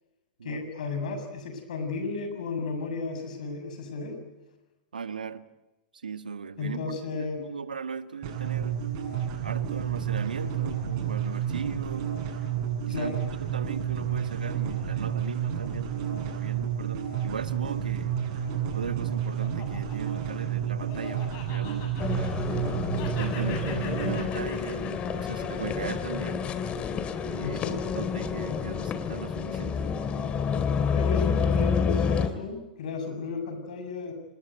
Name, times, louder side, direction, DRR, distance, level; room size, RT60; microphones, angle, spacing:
voice 1, 0.4-4.2 6.6-7.4 12.9-13.2 27.4-28.0 30.9-34.1, left 4 dB, 65° left, 6 dB, 7.1 m, -34 dB
voice 2, 4.9-5.4 6.0-8.8 9.4-12.1 12.9-13.1 13.4-18.1 18.7-22.4 23.2-26.5 27.2-27.6 27.9-30.0, right 6 dB, 80° right, 12 dB, 1.5 m, -38 dB
sound 1, 8.2-24.2, right 9 dB, 50° right, 7.7 m, -30 dB
Laughter, 18.6-22.7 23.0-27.4, left 7 dB, 40° left, 7.7 m, -45 dB
sound 2, 22.0-32.3, left 6 dB, 25° left, 2.4 m, -29 dB
26.5 x 20.5 x 9.3 m, 1.1 s
figure-of-eight pair, 105°, 5 cm